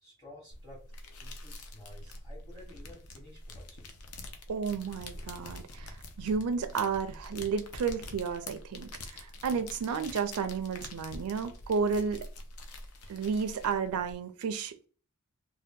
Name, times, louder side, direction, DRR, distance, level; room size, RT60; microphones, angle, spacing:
voice 1, 0.0-0.8 1.1-3.9, left 1 dB, 15° left, 1.2 m, -53 dB
sound 1, 0.5-14.1, left 2 dB, 85° left, 0.6 m, -46 dB
voice 2, 4.5-12.3 13.1-14.9, right 5 dB, 85° right, 0.4 m, -32 dB
2.7 x 2.2 x 3.5 m
head